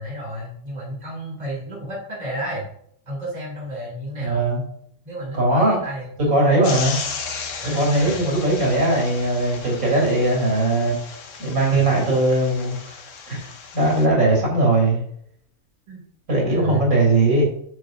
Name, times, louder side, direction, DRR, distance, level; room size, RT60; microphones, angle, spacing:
voice 1, 0.0-2.6 3.1-4.5 5.0-6.7 7.6-8.2 11.7-11.8 15.9-16.0 16.4-16.9, right 1 dB, 30° right, -5 dB, 3.0 m, -32 dB
voice 2, 4.2-4.6 5.3-5.8 6.3-7.0 7.7-11.0 11.4-13.0 13.3-13.4 13.7-15.0 16.3-17.4, right 2 dB, 65° right, -2 dB, 3.9 m, -19 dB
sound 1, 6.6-14.1, left 5 dB, 60° left, 1.3 m, -35 dB
10.5 x 6.8 x 2.6 m, 0.69 s
omnidirectional pair, 1.5 m